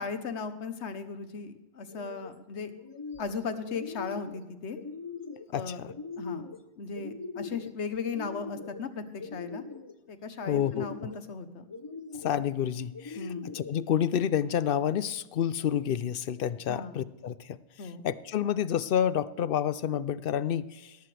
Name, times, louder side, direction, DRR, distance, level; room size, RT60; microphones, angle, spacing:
voice 1, 0.0-2.7 3.2-4.8 5.5-5.8 6.2-6.5 6.8-9.6 10.1-11.7 13.1-13.5 16.7-17.0 17.8-18.0, left 5 dB, 85° left, 10 dB, 1.3 m, -37 dB
sound 1, 1.8-2.3 2.7-3.4 3.6-4.4 4.7-5.5 5.9-6.6 6.9-7.7 8.1-8.8 9.2-9.9 10.4-11.2 11.7-12.4 12.9-13.7, left 4 dB, 25° left, 0.7 m, -41 dB
voice 2, 5.5-5.9 10.5-11.1 12.2-13.3 13.5-17.6 18.0-21.0, left 9 dB, 65° left, 17 dB, 0.7 m, -29 dB
18.0 x 14.0 x 3.3 m, 1.1 s
omnidirectional pair, 1.1 m